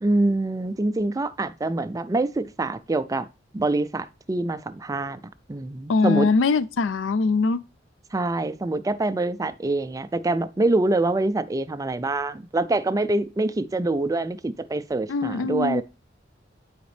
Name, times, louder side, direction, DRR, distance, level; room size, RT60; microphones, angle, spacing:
voice 1, 0.0-3.3 3.5-5.2 5.5-6.3 8.1-15.8, right 2 dB, 20° right, 0.4 m, -25 dB
voice 2, 5.9-7.6 15.1-15.8, left 4 dB, 90° left, 0.4 m, -22 dB
7.8 x 5.1 x 3.3 m
head